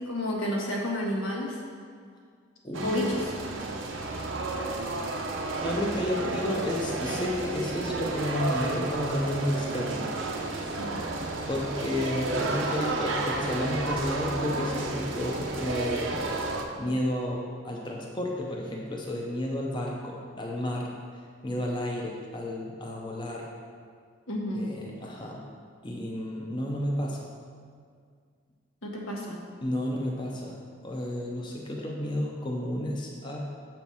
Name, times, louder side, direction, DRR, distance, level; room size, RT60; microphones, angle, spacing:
voice 1, 0.0-1.6 2.8-3.3 10.8-11.1 24.3-24.7 28.8-29.4, left 1 dB, 90° left, -2 dB, 1.4 m, -31 dB
voice 2, 2.6-3.2 5.6-10.1 11.5-16.2 16.8-20.9 21.4-23.5 24.5-25.4 25.8-27.3 29.6-30.5 30.8-33.4, left 1 dB, 25° left, -1 dB, 0.6 m, -31 dB
sound 1, 2.7-16.6, right 2 dB, 75° right, 0.7 m, -32 dB
7.1 x 4.4 x 5.5 m, 2.1 s
head